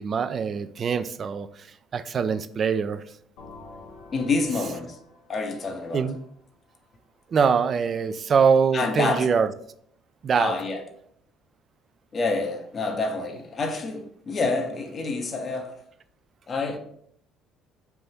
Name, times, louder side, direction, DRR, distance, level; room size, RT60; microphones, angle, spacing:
voice 1, 0.0-1.5 1.9-3.0 5.9-6.2 7.3-9.5 10.2-10.5, right 6 dB, 45° right, 0.3 m, -23 dB
sound 1, 3.4-7.1, left 3 dB, 75° left, 0.7 m, -48 dB
voice 2, 4.1-5.0 5.3-6.1 8.7-9.3 10.3-10.8 12.1-15.7 16.5-16.8, left 3 dB, 40° left, 0.7 m, -27 dB
3.4 x 2.6 x 4.2 m
supercardioid pair, 75°, 0 cm